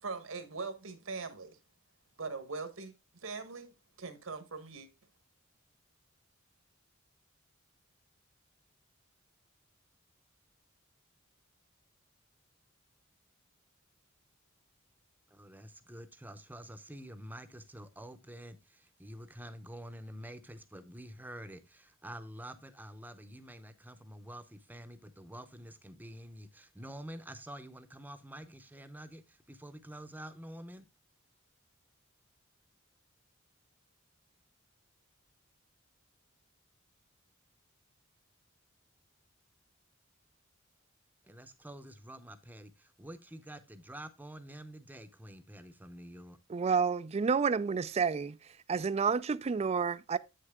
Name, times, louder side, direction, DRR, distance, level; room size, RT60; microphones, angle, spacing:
voice 1, 0.0-1.6 2.2-2.9 3.2-4.9, right 4 dB, 80° right, 1.3 m, -41 dB
voice 2, 15.3-30.9 41.2-46.4, right 1 dB, 10° right, 0.7 m, -48 dB
voice 3, 46.5-48.4 48.7-50.2, right 5 dB, 30° right, 0.3 m, -29 dB
8.3 x 6.6 x 3.6 m
head